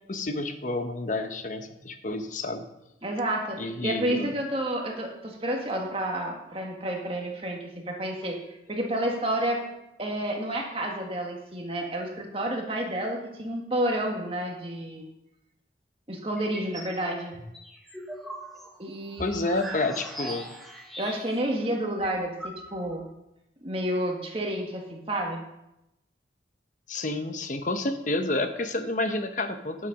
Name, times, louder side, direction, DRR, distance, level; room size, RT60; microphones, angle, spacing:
voice 1, 0.1-2.7 3.6-4.3 19.2-20.5 26.9-29.9, left 2 dB, 45° left, 8 dB, 0.9 m, -29 dB
voice 2, 3.0-8.4 8.7-9.6 10.0-15.1 16.1-17.4 18.8-19.4 21.0-23.1 23.6-25.5, right 1 dB, 30° right, 0 dB, 1.9 m, -30 dB
sound 1, 16.4-16.9 17.3-21.5 21.8-21.9 22.0-23.0, equal, ahead, 1.4 m, -40 dB
10.5 x 7.3 x 5.3 m, 0.87 s
head